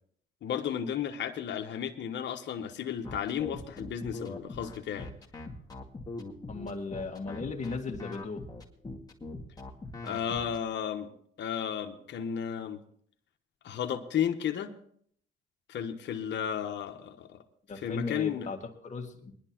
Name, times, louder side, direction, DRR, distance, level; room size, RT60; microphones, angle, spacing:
voice 1, 0.4-5.1 10.0-11.1 11.4-12.8 13.6-14.7 15.7-17.4 17.8-18.5, left 8 dB, 65° left, 4 dB, 1.1 m, -33 dB
sound 1, 3.0-10.6, left 3 dB, 20° left, 2.1 m, -41 dB
voice 2, 6.5-8.4 17.7-19.3, left 4 dB, 35° left, 2 dB, 2.0 m, -37 dB
21.5 x 11.0 x 3.0 m, 0.62 s
cardioid pair, 90°, 20 cm